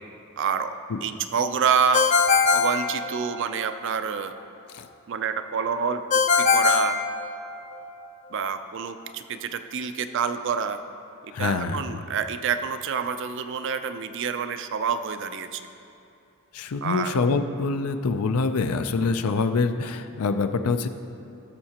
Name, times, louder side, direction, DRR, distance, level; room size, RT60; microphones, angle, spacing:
voice 1, 0.4-0.7 1.0-2.1 2.5-4.3 5.1-6.0 6.4-7.0 8.3-10.8 11.4-15.6 16.8-17.2, right 6 dB, 55° right, 9 dB, 0.4 m, -27 dB
Ringtone, 1.9-3.6 6.1-7.8, left 5 dB, 30° left, 0.4 m, -21 dB
voice 2, 11.3-12.0 16.5-20.9, left 4 dB, 85° left, 9 dB, 0.5 m, -25 dB
15.5 x 6.5 x 2.9 m, 2.8 s
head